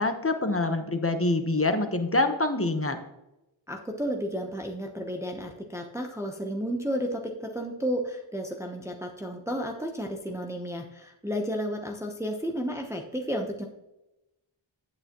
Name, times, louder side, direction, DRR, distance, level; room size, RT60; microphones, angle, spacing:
voice 1, 0.0-3.0, left 2 dB, 25° left, 7 dB, 1.0 m, -25 dB
voice 2, 3.7-13.7, equal, 5° right, 2 dB, 0.9 m, -32 dB
9.6 x 8.7 x 3.0 m, 0.94 s
wide cardioid pair, 55°, 49 cm